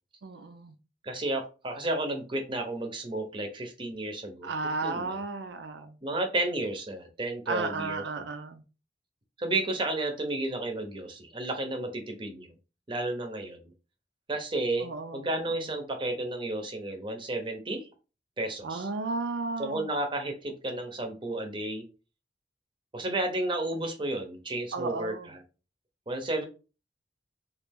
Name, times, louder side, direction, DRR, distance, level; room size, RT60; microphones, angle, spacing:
voice 1, 0.2-0.7 4.4-5.9 7.5-8.6 14.8-15.6 18.6-19.9 24.7-25.3, right 3 dB, 85° right, 7 dB, 0.5 m, -34 dB
voice 2, 1.0-4.5 4.8-5.2 6.0-8.2 9.4-12.5 12.9-13.7 14.3-17.9 18.4-18.9 19.6-21.8 22.9-25.4 26.1-26.4, right 2 dB, 30° right, 5 dB, 0.6 m, -32 dB
3.1 x 2.4 x 3.4 m, 0.33 s
head